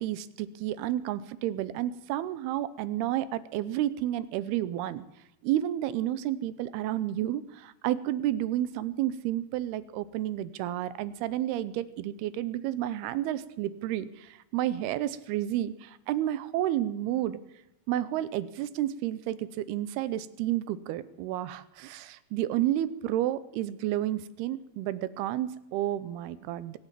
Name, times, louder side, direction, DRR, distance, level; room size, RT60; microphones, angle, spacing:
voice 1, 0.0-5.0 5.4-17.4 17.9-26.8, right 13 dB, 80° right, 15 dB, 2.6 m, -31 dB
22.5 x 8.7 x 7.4 m, 0.87 s
omnidirectional pair, 4.9 m